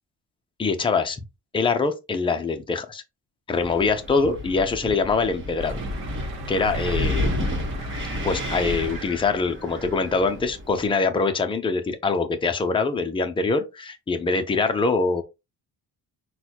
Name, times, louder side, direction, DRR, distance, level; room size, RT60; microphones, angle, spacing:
voice 1, 0.6-1.2 1.5-3.0 3.5-5.8 6.5-7.4 8.2-15.2, left 4 dB, 15° left, 0.5 m, -24 dB
Wind, 3.5-10.9, left 1 dB, 30° right, 1.3 m, -31 dB
sound 1, 5.6-9.5 10.3-10.4 10.8-10.9, right 2 dB, 75° right, 1.0 m, -36 dB
6.0 x 2.3 x 2.8 m
cardioid pair, 160°, 38 cm